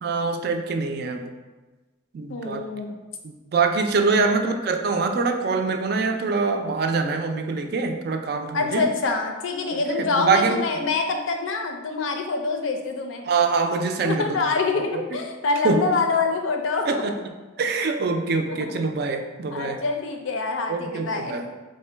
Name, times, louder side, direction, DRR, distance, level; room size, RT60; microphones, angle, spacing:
voice 1, 0.0-1.3 2.1-2.6 3.2-8.9 9.7-10.6 13.3-14.4 14.9-15.0 15.6-15.8 16.9-17.1 17.6-19.8 20.7-21.4, right 4 dB, 55° right, 6 dB, 0.3 m, -24 dB
voice 2, 2.3-2.9 4.2-4.4 8.5-13.3 14.0-17.0 18.5-18.8 19.5-21.5, left 4 dB, 85° left, 4 dB, 0.5 m, -26 dB
3.7 x 2.1 x 4.4 m, 1.2 s
head